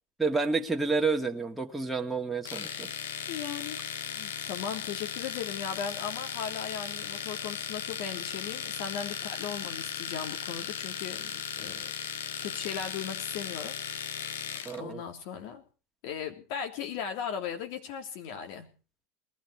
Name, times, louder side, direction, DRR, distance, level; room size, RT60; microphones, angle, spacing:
voice 1, 0.2-2.9 14.6-15.0, right 4 dB, 5° right, 1 dB, 2.0 m, -29 dB
Domestic sounds home sounds, 2.4-14.8, left 8 dB, 85° left, 1.2 m, -37 dB
voice 2, 3.3-3.8 4.1-11.9 12.4-13.8 14.8-15.6 16.0-18.7, left 7 dB, 65° left, 4 dB, 3.2 m, -37 dB
20.0 x 13.5 x 4.8 m, 0.37 s
hypercardioid pair, 100°, 0 cm